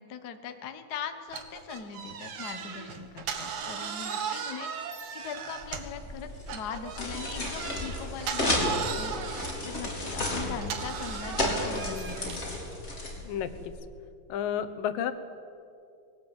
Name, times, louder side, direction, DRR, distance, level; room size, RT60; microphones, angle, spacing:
voice 1, 0.0-12.4, left 6 dB, 65° left, 8 dB, 0.9 m, -41 dB
sound 1, 1.3-6.0 6.5-12.5, right 7 dB, 55° right, 2.4 m, -37 dB
sound 2, 5.6-13.7, left 1 dB, 25° left, 4.1 m, -33 dB
voice 2, 13.2-13.8 14.3-15.1, left 9 dB, 80° left, 10 dB, 2.8 m, -31 dB
21.5 x 18.5 x 9.0 m, 2.5 s
omnidirectional pair, 3.9 m